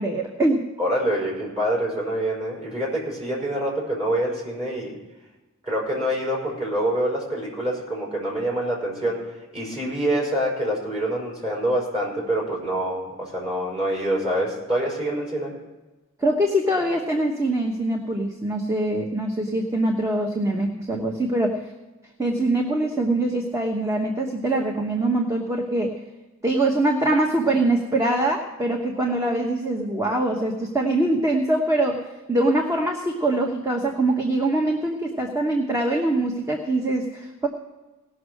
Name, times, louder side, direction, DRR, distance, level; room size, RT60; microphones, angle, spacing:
voice 1, 0.0-0.6 16.2-21.6 22.2-25.9 26.4-37.5, right 1 dB, 15° right, 1 dB, 1.0 m, -23 dB
voice 2, 0.8-4.9 5.6-15.5, right 1 dB, 30° right, -4 dB, 5.6 m, -26 dB
18.0 x 6.3 x 6.4 m, 1.1 s
head